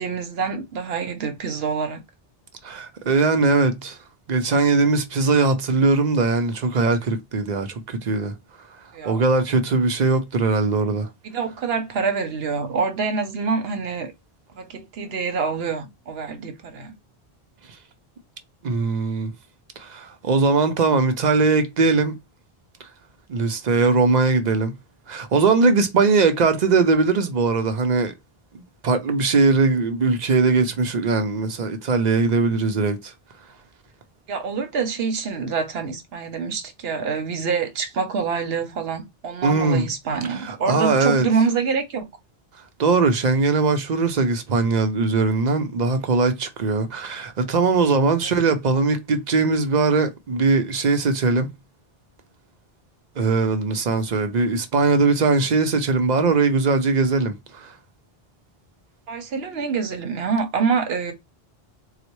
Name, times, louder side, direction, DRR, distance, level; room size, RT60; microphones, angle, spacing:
voice 1, 0.0-2.0 8.9-9.3 11.2-14.1 14.5-16.9 34.3-42.0 48.2-48.3 59.1-61.1, right 5 dB, 80° right, 1.0 m, -26 dB
voice 2, 2.6-4.0 4.3-8.3 9.0-11.1 18.6-19.3 19.8-22.1 23.3-24.7 25.1-28.1 28.5-33.1 39.4-39.9 40.3-41.3 42.8-51.5 53.2-57.7, right 4 dB, 50° right, 0.7 m, -20 dB
4.0 x 2.1 x 3.0 m
omnidirectional pair, 1.0 m